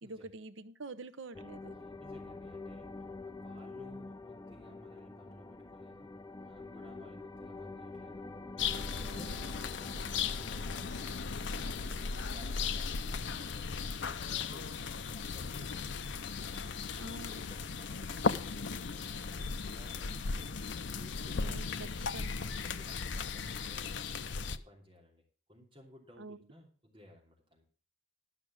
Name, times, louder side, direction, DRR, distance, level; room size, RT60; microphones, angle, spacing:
voice 1, 0.0-1.8 9.0-9.4 17.0-17.4 21.4-21.7 22.0-22.5 26.2-26.4, right 2 dB, 85° right, 11 dB, 0.8 m, -46 dB
sound 1, 1.3-13.5, left 3 dB, 20° left, 0.6 m, -47 dB
voice 2, 1.8-6.1 6.4-8.3 8.8-11.1 11.8-16.8 17.2-20.5 20.9-21.6 22.4-25.2 25.5-27.6, left 1 dB, 25° right, -1 dB, 3.0 m, -57 dB
sound 2, 8.6-24.6, left 5 dB, 70° left, 0.6 m, -37 dB
12.0 x 6.0 x 6.2 m, 0.41 s
head